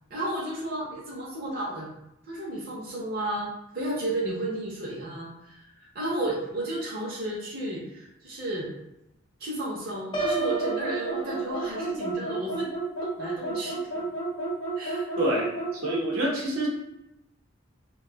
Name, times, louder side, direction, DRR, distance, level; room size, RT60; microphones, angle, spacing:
voice 1, 0.1-1.9 2.3-8.7 9.4-12.7 13.0-13.8 14.8-15.1, right 1 dB, 45° right, -6 dB, 0.6 m, -33 dB
Piano, 10.1-12.0, right 4 dB, 25° left, 0.3 m, -32 dB
sound 1, 10.2-16.1, right 3 dB, 90° left, 0.7 m, -32 dB
voice 2, 15.2-15.5 15.7-16.7, right 1 dB, 80° right, -3 dB, 0.9 m, -26 dB
2.6 x 2.2 x 3.8 m, 0.86 s
head